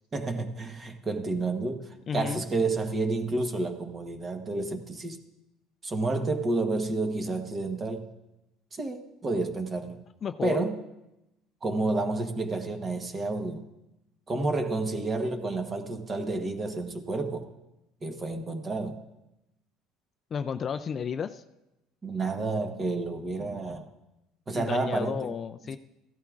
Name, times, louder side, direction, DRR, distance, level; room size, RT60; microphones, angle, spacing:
voice 1, 0.1-5.2 5.8-8.1 8.7-10.0 10.4-10.8 11.6-13.6 14.3-17.5 18.0-19.0 22.0-23.9 24.5-25.4 25.6-25.8, right 3 dB, 25° right, 6 dB, 1.1 m, -30 dB
voice 2, 2.1-2.4 10.2-10.6 20.3-21.4 24.5-25.8, left 7 dB, 35° left, 10 dB, 0.4 m, -32 dB
16.0 x 12.5 x 2.5 m, 0.94 s
cardioid pair, 120°, 0 cm